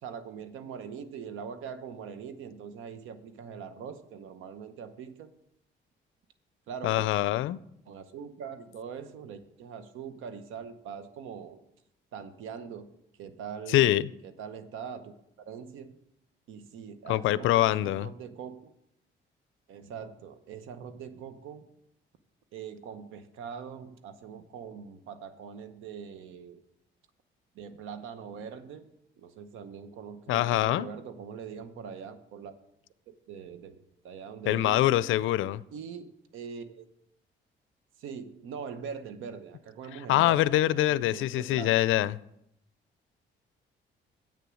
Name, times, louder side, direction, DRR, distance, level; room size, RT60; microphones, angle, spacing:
voice 1, 0.0-5.3 6.7-7.0 7.9-11.6 12.1-12.9 13.2-16.0 16.5-18.6 19.7-21.7 22.5-26.6 27.5-28.9 29.2-32.5 33.1-34.8 35.7-36.9 38.0-41.7, right 7 dB, 90° right, 11 dB, 0.9 m, -42 dB
voice 2, 6.8-7.6 13.7-14.1 17.1-18.1 30.3-30.9 34.5-35.6 40.1-42.2, left 14 dB, 85° left, 18 dB, 0.4 m, -24 dB
8.3 x 6.9 x 6.3 m, 0.78 s
cardioid pair, 90°, 20 cm